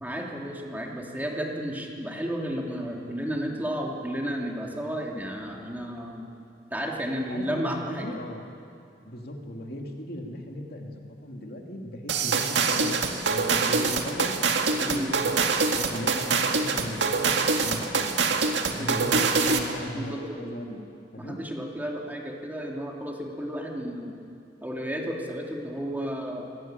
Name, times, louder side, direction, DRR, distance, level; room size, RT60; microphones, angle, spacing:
voice 1, 0.0-6.2 6.7-8.1 14.9-15.1 18.8-19.1 19.5-19.6 19.9-20.5 21.2-24.1 24.6-26.6, equal, 10° right, -1 dB, 2.7 m, -32 dB
voice 2, 7.3-8.4 9.1-14.4 14.8-15.4 15.7-18.2 18.7-20.8 21.1-21.4, equal, 60° left, 2 dB, 2.6 m, -37 dB
sound 1, 12.1-19.7, right 4 dB, 85° right, 2.1 m, -24 dB
25.5 x 18.5 x 8.9 m, 2.5 s
head